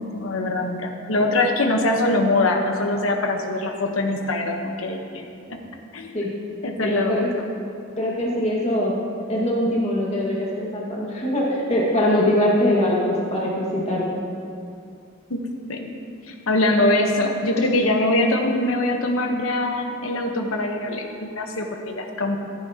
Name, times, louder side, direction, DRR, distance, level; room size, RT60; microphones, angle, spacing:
voice 1, 0.0-5.2 5.5-5.6 5.9-6.1 6.6-7.5 15.3-15.4 15.7-15.9 16.3-22.4, left 2 dB, 90° left, 3 dB, 1.1 m, -23 dB
voice 2, 6.8-7.3 8.0-9.0 9.3-14.1, left 1 dB, 30° left, -5 dB, 1.8 m, -22 dB
14.0 x 9.8 x 2.9 m, 2.5 s
head